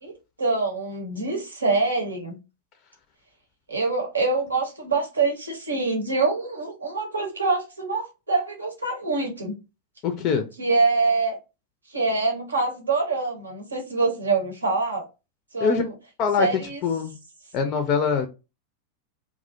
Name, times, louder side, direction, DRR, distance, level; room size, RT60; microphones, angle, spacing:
voice 1, 0.0-2.4 3.7-9.5 10.6-11.4 11.9-15.1 15.5-15.9 16.4-16.8, right 3 dB, 75° right, 0.8 m, -25 dB
voice 2, 10.0-10.5 15.6-15.8 16.2-16.5 16.8-17.1 17.5-18.3, left 5 dB, 35° left, 0.4 m, -23 dB
2.4 x 2.1 x 2.5 m
figure-of-eight pair, 90°, 0 cm